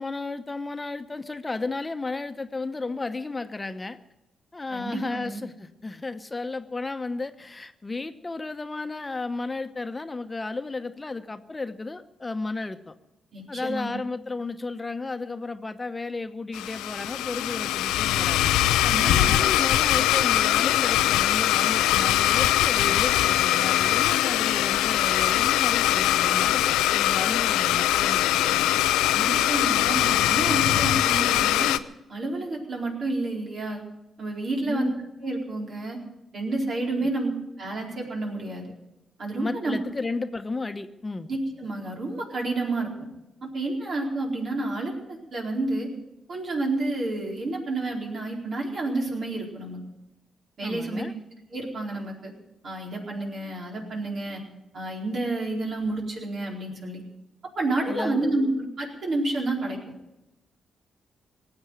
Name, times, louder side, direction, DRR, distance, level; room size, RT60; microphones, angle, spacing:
voice 1, 0.0-4.0 4.5-12.9 13.5-18.5 19.0-28.7 34.7-34.9 37.0-37.1 39.4-41.3 50.6-51.1 57.9-58.3, left 3 dB, 30° left, 9 dB, 1.0 m, -33 dB
voice 2, 4.7-5.4 13.3-14.0 18.8-19.5 29.1-31.7 32.1-33.8 34.2-34.9 35.2-36.0 36.3-37.3 37.6-38.7 39.2-39.8 41.3-43.1 43.4-45.9 46.3-49.8 50.6-51.1 51.5-52.3 52.6-54.4 54.7-57.0 57.6-59.8, right 2 dB, 60° right, -1 dB, 4.5 m, -30 dB
Domestic sounds home sounds, 16.5-31.8, left 13 dB, 85° left, 0.4 m, -22 dB
18.5 x 8.0 x 9.4 m, 0.93 s
hypercardioid pair, 45°, 0 cm